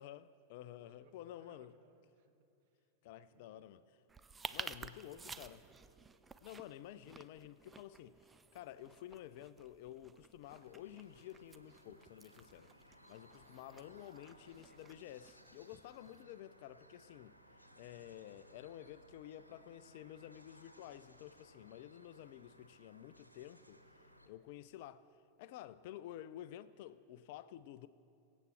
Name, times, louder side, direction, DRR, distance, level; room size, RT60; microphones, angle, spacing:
voice 1, 0.0-1.7 3.0-3.8 4.5-5.6 6.4-8.2 8.5-12.7 13.1-23.8 24.3-25.1 25.4-27.9, left 12 dB, 50° left, 0.4 m, -51 dB
voice 2, 0.7-2.3 2.6-2.7 3.3-4.0 4.7-6.1 13.1-13.4 26.7-26.9, right 6 dB, 50° right, 1.5 m, -68 dB
sound 1, 4.1-16.2, right 4 dB, 15° right, 0.5 m, -53 dB
sound 2, 10.5-24.3, equal, 90° left, 1.0 m, -63 dB
23.5 x 8.1 x 4.5 m
figure-of-eight pair, 90°, 0 cm